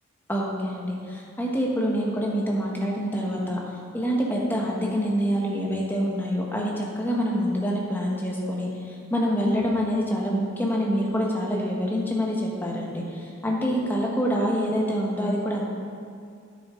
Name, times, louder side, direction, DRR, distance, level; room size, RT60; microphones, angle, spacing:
voice 1, 0.3-3.6 3.9-15.6, equal, 10° left, -2 dB, 1.2 m, -26 dB
9.5 x 8.6 x 3.8 m, 2.4 s
head